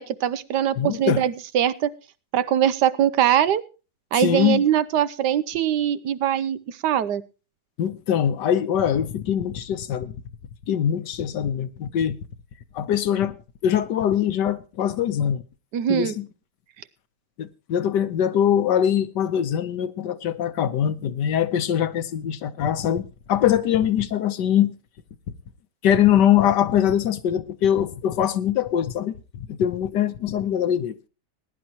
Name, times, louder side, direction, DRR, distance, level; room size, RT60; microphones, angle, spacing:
voice 1, 0.0-1.9 2.3-3.6 4.1-7.2 15.7-16.1, right 10 dB, 80° right, 1.4 m, -22 dB
voice 2, 0.8-1.2 4.2-4.6 7.8-10.1 10.7-12.2 12.7-13.4 13.6-15.4 15.9-16.3 17.4-24.7 25.8-30.9, left 9 dB, 80° left, 1.6 m, -22 dB
20.0 x 10.5 x 2.9 m
omnidirectional pair, 1.8 m